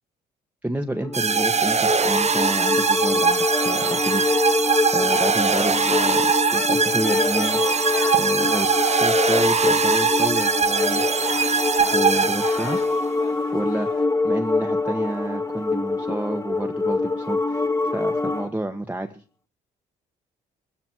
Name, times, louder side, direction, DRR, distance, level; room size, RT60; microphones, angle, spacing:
voice 1, 0.6-4.6 4.9-6.3 6.5-7.6 8.1-11.0 11.9-12.8 13.5-19.2, right 1 dB, 10° right, 4 dB, 1.8 m, -30 dB
sound 1, 0.9-18.5, left 3 dB, 15° left, 1.4 m, -25 dB
sound 2, 1.1-13.0, right 5 dB, 35° right, 1.6 m, -22 dB
sound 3, 5.1-14.1, left 12 dB, 80° left, 1.3 m, -36 dB
21.0 x 13.5 x 4.8 m, 0.38 s
supercardioid pair, 70°, 20 cm